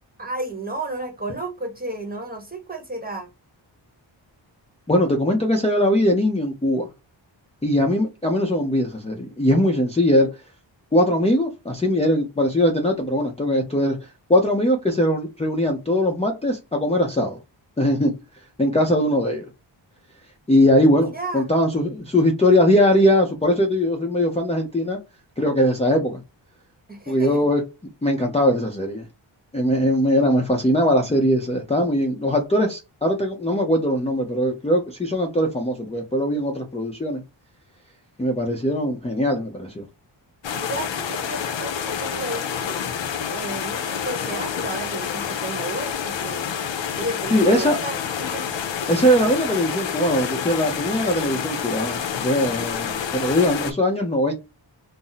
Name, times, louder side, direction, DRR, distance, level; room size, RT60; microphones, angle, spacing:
voice 1, 0.2-3.3 20.9-21.5 26.9-27.4 40.5-42.8 43.3-46.5 47.0-48.5, right 2 dB, 20° right, 1.0 m, -32 dB
voice 2, 4.9-6.9 7.6-10.3 10.9-17.4 17.8-18.1 18.6-19.5 20.5-25.0 25.4-26.2 27.1-27.6 28.0-29.1 29.5-37.2 38.2-39.8 47.3-47.8 48.9-54.3, equal, 15° left, 0.5 m, -20 dB
sound 1, 40.4-53.7, left 7 dB, 70° left, 0.6 m, -28 dB
2.6 x 2.0 x 3.9 m
wide cardioid pair, 90°, 46 cm